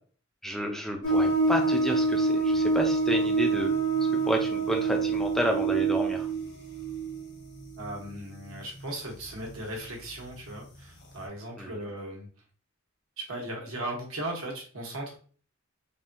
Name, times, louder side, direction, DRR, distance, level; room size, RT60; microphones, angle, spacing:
voice 1, 0.4-3.7 4.3-6.3 11.6-11.7, equal, ahead, 1 dB, 0.3 m, -30 dB
sound 1, 1.0-9.4 9.8-9.9 10.4-10.6, right 3 dB, 55° left, 1.0 m, -27 dB
voice 2, 7.8-12.3 13.3-15.2, right 1 dB, 80° right, 0 dB, 1.0 m, -37 dB
3.5 x 2.2 x 2.6 m, 0.42 s
head